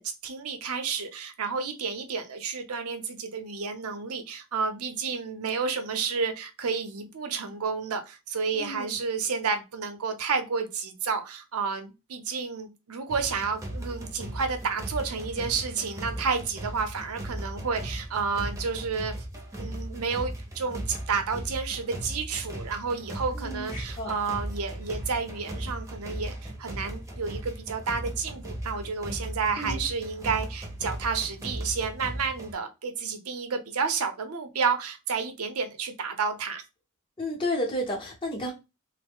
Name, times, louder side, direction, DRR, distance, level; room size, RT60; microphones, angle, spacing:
voice 1, 0.0-19.1 19.6-36.6, right 5 dB, 85° right, 0.7 m, -31 dB
voice 2, 8.5-9.0 23.3-24.1 29.6-29.8 37.2-38.5, left 1 dB, 25° left, 0.7 m, -32 dB
sound 1, 13.1-32.5, right 1 dB, 15° right, 0.7 m, -37 dB
3.1 x 2.0 x 3.5 m
head